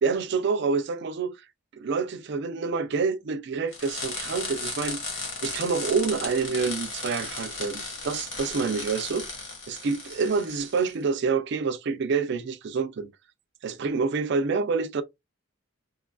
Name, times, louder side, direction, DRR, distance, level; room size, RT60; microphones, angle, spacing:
voice 1, 0.0-1.4 1.7-9.3 9.7-13.1 13.6-15.0, right 5 dB, 60° right, 0.4 m, -27 dB
sound 1, 3.7-10.9, left 3 dB, 65° left, 1.3 m, -35 dB
2.9 x 2.4 x 2.2 m
head